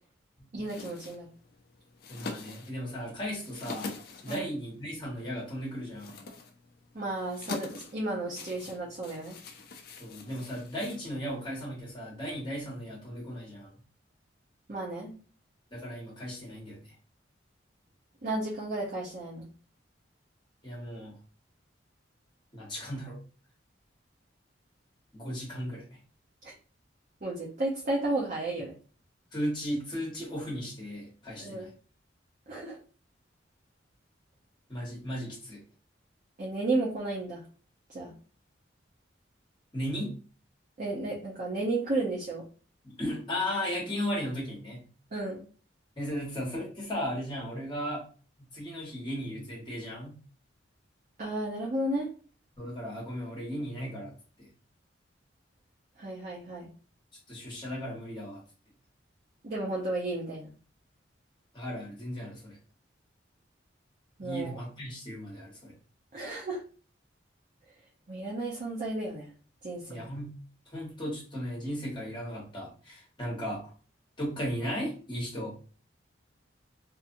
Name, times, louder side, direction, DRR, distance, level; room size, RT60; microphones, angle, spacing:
voice 1, 0.5-1.3 4.3-4.5 6.9-9.3 14.7-15.1 18.2-19.5 26.4-26.5 27.2-28.7 31.4-31.7 32.5-32.8 36.4-37.4 37.9-38.1 40.8-42.4 45.1-45.4 51.2-52.1 56.0-56.7 59.4-60.5 64.2-64.6 66.1-66.6 68.1-69.3 69.6-70.0, right 2 dB, 45° right, -4 dB, 0.7 m, -33 dB
sound 1, 0.6-11.5, left 3 dB, 55° left, 0.4 m, -45 dB
voice 2, 2.1-3.9 4.2-6.1 10.0-13.7 15.7-16.9 20.6-21.2 22.5-23.2 25.1-26.0 29.3-31.7 34.7-35.6 39.7-40.2 42.8-44.9 46.0-48.1 48.4-50.1 52.6-54.1 54.4-54.5 57.3-58.4 61.5-62.6 64.2-65.7 69.9-70.4 70.7-73.6 74.2-75.6, equal, 25° left, -3 dB, 1.3 m, -36 dB
2.6 x 2.5 x 2.6 m, 0.38 s
head